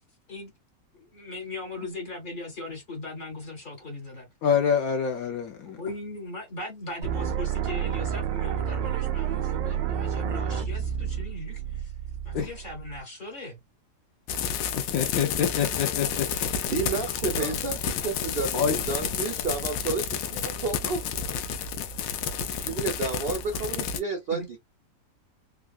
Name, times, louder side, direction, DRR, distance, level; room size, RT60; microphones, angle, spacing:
voice 1, 1.0-4.3 5.6-11.9 12.2-13.6 17.0-17.6 24.3-24.5, left 2 dB, 40° left, 0.7 m, -38 dB
voice 2, 4.4-5.8 12.3-12.5 14.8-16.5 18.5-18.8, left 7 dB, 70° left, 0.9 m, -26 dB
sound 1, 7.0-13.0, right 9 dB, 85° right, 1.3 m, -30 dB
sound 2, 14.3-24.0, left 7 dB, 85° left, 1.3 m, -30 dB
voice 3, 16.6-21.0 22.5-24.6, right 4 dB, 70° right, 0.5 m, -31 dB
3.6 x 2.2 x 2.3 m
omnidirectional pair, 1.9 m